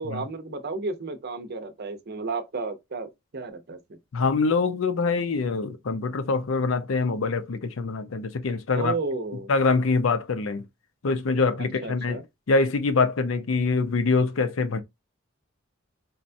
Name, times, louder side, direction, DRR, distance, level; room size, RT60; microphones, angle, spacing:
voice 1, 0.0-3.8 8.7-9.5 11.8-12.2, right 3 dB, 50° right, 0.6 m, -32 dB
voice 2, 4.1-8.9 9.5-10.6 11.0-12.2 12.5-14.8, left 4 dB, 70° left, 0.5 m, -24 dB
4.1 x 2.2 x 2.6 m
head